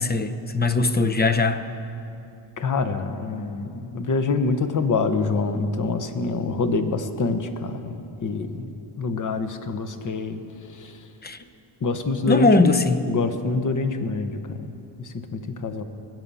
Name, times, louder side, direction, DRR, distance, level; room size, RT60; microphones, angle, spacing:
voice 1, 0.0-1.6 11.2-11.4 12.3-13.0, left 3 dB, 20° left, 8 dB, 0.8 m, -20 dB
voice 2, 2.6-11.1 11.8-12.7 13.1-15.8, left 4 dB, 40° left, 9 dB, 1.1 m, -26 dB
21.0 x 7.7 x 5.6 m, 2.6 s
cardioid pair, 80°, 47 cm